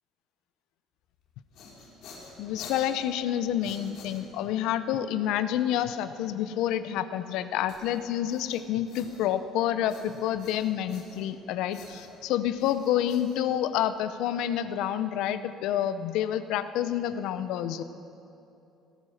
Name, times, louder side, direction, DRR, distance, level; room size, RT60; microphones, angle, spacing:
sound 1, 1.2-4.6 7.7-9.5 9.9-11.4 11.7-14.0, left 3 dB, 55° left, 3.3 m, -49 dB
voice 1, 2.4-17.8, left 11 dB, 70° left, 12 dB, 0.7 m, -28 dB
17.5 x 12.5 x 6.5 m, 2.8 s
cardioid pair, 170°, 0 cm